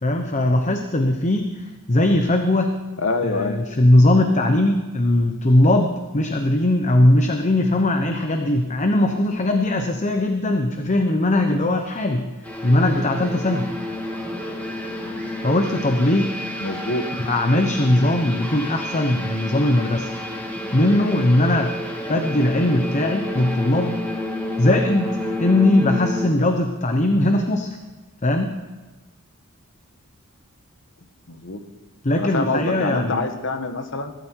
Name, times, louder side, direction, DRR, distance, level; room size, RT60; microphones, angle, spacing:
voice 1, 0.0-2.7 3.2-12.3 12.6-13.7 15.4-16.3 17.2-20.1 20.7-21.7 22.1-24.0 24.6-27.7 28.2-28.5 32.0-33.2, left 1 dB, 35° left, 5 dB, 1.0 m, -19 dB
voice 2, 3.0-3.6 16.6-17.1 31.3-31.6 32.2-34.1, left 3 dB, 60° left, 7 dB, 1.4 m, -26 dB
sound 1, 12.4-26.3, left 1 dB, 10° left, 3.3 m, -30 dB
23.0 x 12.5 x 4.7 m, 1.2 s
head